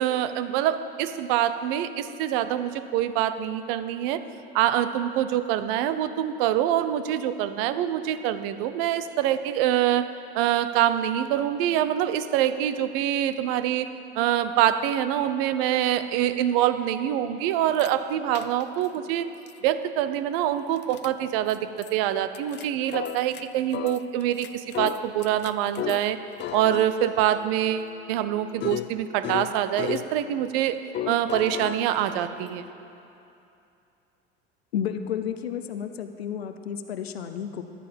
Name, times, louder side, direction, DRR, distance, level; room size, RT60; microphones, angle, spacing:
voice 1, 0.0-4.2 4.5-19.3 19.6-26.2 26.5-30.8 31.1-32.6, right 11 dB, 65° right, 12 dB, 0.8 m, -25 dB
sound 1, 17.7-17.9 18.3-18.9 19.5-19.6 20.8-21.1 21.5-21.6 21.8-21.9 22.3-23.4 23.7-26.1 26.4-30.1 30.9-32.7, left 12 dB, 35° left, 0.5 m, -35 dB
voice 2, 34.7-37.6, left 8 dB, 85° left, 8 dB, 0.7 m, -31 dB
15.0 x 11.0 x 5.2 m, 2.7 s
hypercardioid pair, 75°, 30 cm